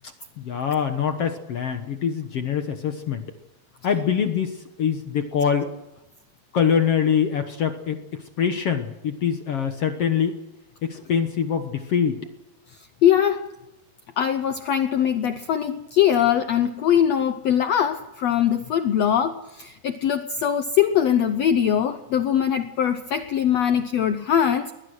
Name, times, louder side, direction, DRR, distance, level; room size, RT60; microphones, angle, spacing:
voice 1, 0.4-3.2 3.8-5.7 6.5-8.0 8.4-10.4 10.8-12.2, left 7 dB, 60° left, 1.7 m, -24 dB
voice 2, 13.0-13.5 14.2-24.7, left 9 dB, 85° left, 1.4 m, -21 dB
21.0 x 21.0 x 6.3 m
omnidirectional pair, 4.2 m